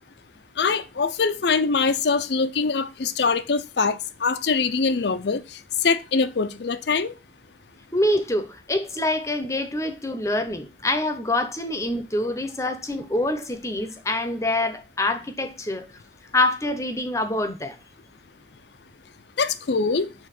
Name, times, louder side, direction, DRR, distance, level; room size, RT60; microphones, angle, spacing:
voice 1, 0.6-7.1 19.4-20.1, left 4 dB, 65° left, 0.6 m, -23 dB
voice 2, 7.9-15.9 16.3-17.8, left 1 dB, 15° left, 0.8 m, -25 dB
7.1 x 3.6 x 5.8 m
head